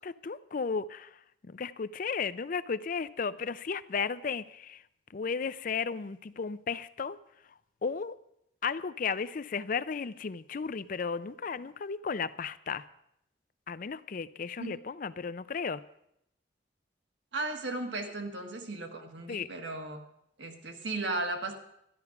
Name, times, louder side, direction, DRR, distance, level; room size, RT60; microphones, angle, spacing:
voice 1, 0.0-4.8 5.1-7.2 7.5-8.2 8.6-12.8 13.7-15.8 19.3-19.5, left 5 dB, 50° left, 16 dB, 0.5 m, -34 dB
voice 2, 17.3-20.0 20.4-21.6, right 2 dB, 80° right, 3 dB, 1.7 m, -35 dB
12.5 x 11.0 x 5.8 m, 0.78 s
head